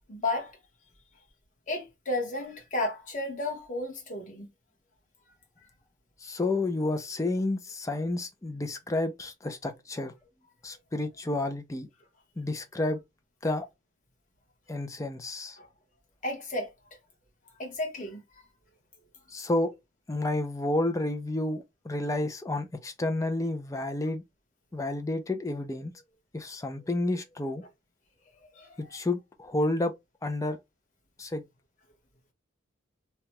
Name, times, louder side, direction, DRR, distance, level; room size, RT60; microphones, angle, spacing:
voice 1, 0.1-0.6 1.7-4.5 15.6-15.7 16.2-16.7 17.6-18.4 28.4-29.0, left 2 dB, 40° left, 1.1 m, -33 dB
voice 2, 6.2-10.1 10.6-11.9 12.4-13.0 13.4-13.7 14.7-15.6 19.3-19.7 20.1-24.2 24.7-25.9 26.3-27.6 28.8-29.9 30.2-30.6 31.2-31.4, left 2 dB, 15° left, 0.4 m, -30 dB
2.9 x 2.2 x 2.9 m
head